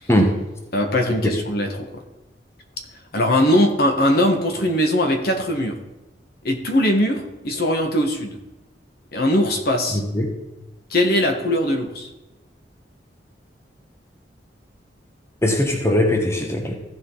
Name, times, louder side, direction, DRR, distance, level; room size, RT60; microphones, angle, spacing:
voice 1, 0.1-0.4 1.2-1.3 9.9-10.4 15.4-16.7, left 1 dB, 15° left, 2 dB, 1.2 m, -20 dB
voice 2, 0.7-2.0 3.1-5.8 6.4-8.4 9.1-10.0 10.9-12.1, left 1 dB, 60° left, 4 dB, 1.4 m, -20 dB
15.0 x 5.2 x 3.8 m, 1.0 s
head